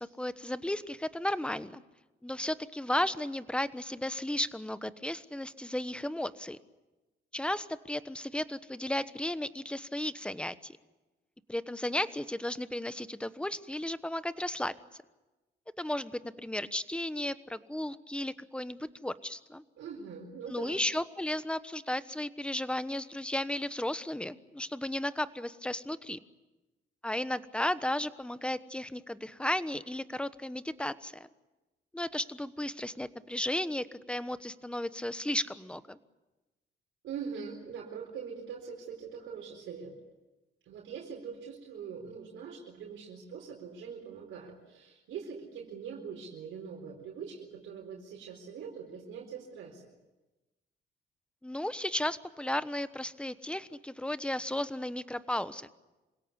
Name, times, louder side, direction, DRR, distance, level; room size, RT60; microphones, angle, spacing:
voice 1, 0.0-1.8 2.2-6.6 7.3-10.8 11.5-14.7 15.8-19.6 20.5-26.2 27.0-31.3 31.9-36.0 51.4-55.7, left 1 dB, 5° left, 13 dB, 1.1 m, -34 dB
voice 2, 19.8-20.8 37.0-39.9 40.6-49.9, right 6 dB, 80° right, -2 dB, 4.5 m, -43 dB
27.0 x 17.0 x 9.8 m, 1.1 s
cardioid pair, 90°, 20 cm